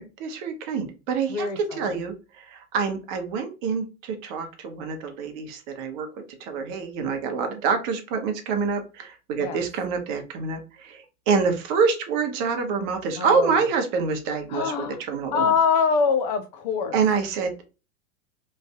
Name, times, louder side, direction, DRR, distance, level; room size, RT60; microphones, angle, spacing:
voice 1, 0.0-6.1 6.4-15.5 16.9-17.5, right 5 dB, 35° right, 0.9 m, -26 dB
voice 2, 1.3-2.0 9.4-9.6 13.2-13.6 14.5-15.0 15.3-17.0, left 5 dB, 35° left, 0.5 m, -24 dB
3.1 x 2.5 x 3.3 m
figure-of-eight pair, 95°, 41 cm